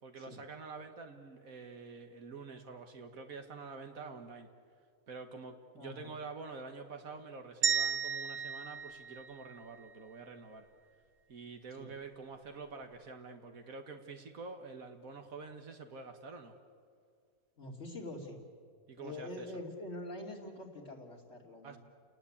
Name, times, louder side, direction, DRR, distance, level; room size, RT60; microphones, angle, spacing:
voice 1, 0.0-4.5 5.1-10.7 11.3-16.5 18.9-19.5 21.6-21.8, right 4 dB, 75° right, 5 dB, 1.9 m, -47 dB
voice 2, 5.7-6.1 11.8-11.9 17.6-18.4 19.0-21.8, left 1 dB, 50° left, -3 dB, 2.8 m, -45 dB
sound 1, 7.6-9.9, right 6 dB, 45° right, 1.1 m, -34 dB
29.5 x 19.0 x 8.6 m, 2.2 s
omnidirectional pair, 1.5 m